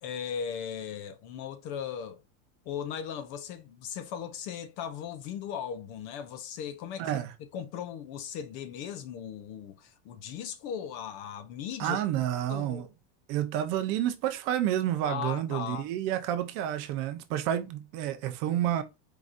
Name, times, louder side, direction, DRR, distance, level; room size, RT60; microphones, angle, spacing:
voice 1, 0.0-2.2 2.7-7.2 7.5-12.0 12.5-12.9 15.0-15.9, left 8 dB, 35° left, 0.4 m, -38 dB
voice 2, 7.0-7.3 11.8-12.9 13.3-18.8, right 11 dB, 35° right, 0.5 m, -29 dB
4.6 x 3.9 x 2.5 m
supercardioid pair, 170°, 37 cm